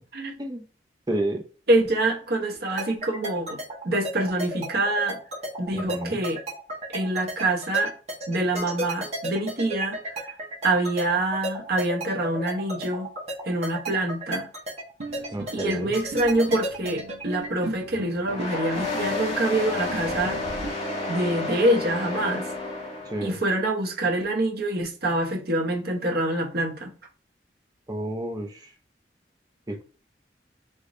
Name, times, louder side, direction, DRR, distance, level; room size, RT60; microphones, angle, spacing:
voice 1, 1.1-1.4 5.7-6.2 15.3-16.0 23.0-23.4 27.9-28.7 29.7-29.8, right 1 dB, 20° right, 0.7 m, -30 dB
voice 2, 1.7-5.2 5.6-6.4 6.9-7.9 8.3-10.3 10.6-13.1 13.5-14.5 15.5-20.4 21.1-22.5 23.2-26.9, right 1 dB, 60° right, 0.9 m, -25 dB
sound 1, 2.8-17.5, right 1 dB, 40° right, 1.2 m, -33 dB
sound 2, 15.0-20.7, right 3 dB, 85° right, 0.6 m, -39 dB
sound 3, 18.3-23.4, left 2 dB, 35° left, 1.3 m, -31 dB
3.8 x 3.5 x 2.5 m
head